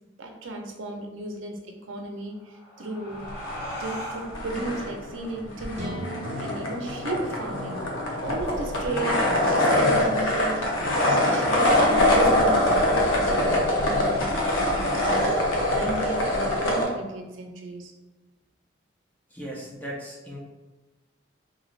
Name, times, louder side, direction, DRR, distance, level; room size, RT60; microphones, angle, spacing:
voice 1, 0.2-3.3 3.8-6.0 6.4-7.8 8.2-9.2 9.5-17.9, right 1 dB, 75° right, 2 dB, 0.6 m, -35 dB
sound 1, 2.2-7.4, equal, 50° left, 0.9 m, -40 dB
sound 2, 3.3-4.1 4.3-16.8, left 1 dB, 85° left, 0.8 m, -23 dB
sound 3, 5.7-9.5, right 2 dB, 35° right, 0.6 m, -40 dB
voice 2, 19.3-20.4, equal, 10° left, -3 dB, 0.6 m, -37 dB
3.9 x 3.1 x 2.4 m, 1.1 s
head